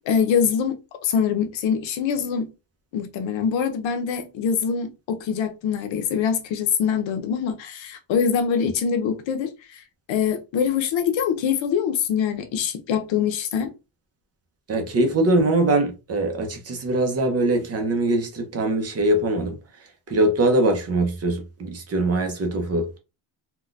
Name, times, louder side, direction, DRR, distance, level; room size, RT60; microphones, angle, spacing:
voice 1, 0.1-2.5 2.9-9.5 10.1-13.7, left 7 dB, 85° left, 0.7 m, -24 dB
voice 2, 14.7-19.6 20.1-23.0, right 2 dB, 35° right, 0.5 m, -22 dB
3.8 x 2.2 x 2.4 m
cardioid pair, 170°, 45 cm